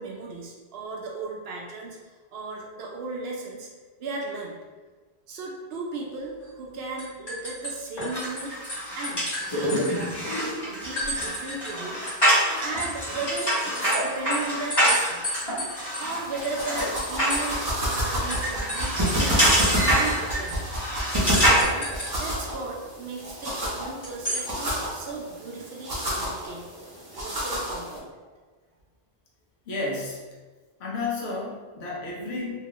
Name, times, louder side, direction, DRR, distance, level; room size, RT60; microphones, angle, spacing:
voice 1, 0.0-3.7 4.0-4.6 5.3-8.5 9.0-12.0 12.6-15.6 16.0-20.7 21.5-28.2, right 3 dB, 70° right, -1 dB, 0.8 m, -36 dB
sound 1, 6.4-6.7 7.0-8.4 8.7-10.4 11.0-11.8 12.1-17.6 17.9-18.0 18.3-19.8 20.0-20.1 20.5-20.6 21.3-22.1 24.0-24.4, equal, 40° left, 1.5 m, -33 dB
sound 2, 8.1-21.6, equal, 25° left, 1.0 m, -26 dB
sound 3, 16.0-28.0, equal, 25° right, 0.6 m, -29 dB
voice 2, 29.7-30.3 30.8-32.6, left 3 dB, 75° left, -3 dB, 1.0 m, -31 dB
2.9 x 2.3 x 2.9 m, 1.4 s
omnidirectional pair, 1.1 m